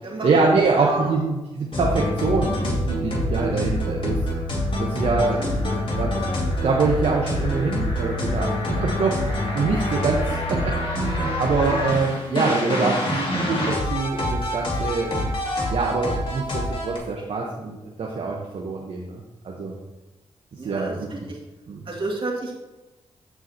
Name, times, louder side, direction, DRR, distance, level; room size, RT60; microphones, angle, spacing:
voice 1, 0.0-4.2 4.8-5.5 6.0-6.2 6.6-15.3 15.7-19.8 20.6-21.1 21.7-21.8, right 4 dB, 65° right, -2 dB, 1.1 m, -24 dB
voice 2, 0.8-1.1 3.6-3.8 5.3-5.8 10.5-10.6 15.1-15.3 20.6-21.4 21.9-22.5, right 2 dB, 50° right, -2 dB, 2.5 m, -32 dB
sound 1, 1.7-17.0, left 1 dB, 50° left, 2.3 m, -26 dB
14.0 x 4.7 x 2.9 m, 1.1 s
cardioid pair, 60°, 12 cm